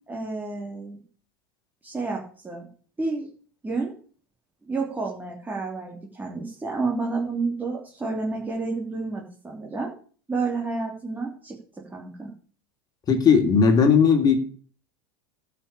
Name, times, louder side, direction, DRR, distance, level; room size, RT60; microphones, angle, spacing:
voice 1, 0.1-1.0 1.8-2.7 3.0-3.3 3.6-3.9 4.6-9.9 10.3-12.3, right 3 dB, 15° right, -1 dB, 3.3 m, -30 dB
voice 2, 13.1-14.4, left 6 dB, 35° left, 5 dB, 3.0 m, -17 dB
12.5 x 6.1 x 8.6 m, 0.43 s
hypercardioid pair, 95°, 12 cm